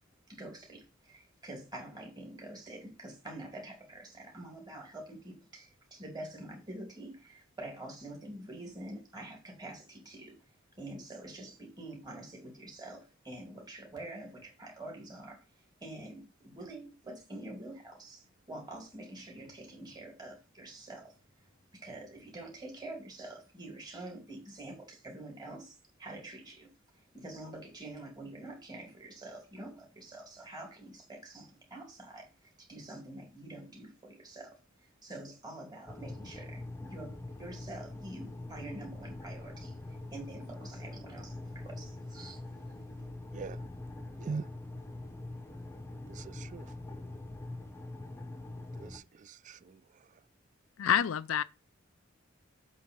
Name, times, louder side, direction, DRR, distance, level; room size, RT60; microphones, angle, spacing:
voice 1, 0.3-10.4 10.8-15.4 15.8-21.2 21.7-39.8 40.1-42.4, right 1 dB, 20° right, 2.7 m, -46 dB
sound 1, 35.9-49.0, left 2 dB, 10° left, 0.7 m, -44 dB
voice 2, 43.3-43.6 44.2-44.5 46.1-46.7 48.8-50.1, right 5 dB, 40° right, 0.3 m, -42 dB
voice 3, 50.8-51.4, left 9 dB, 80° left, 0.4 m, -27 dB
7.4 x 3.6 x 5.3 m
head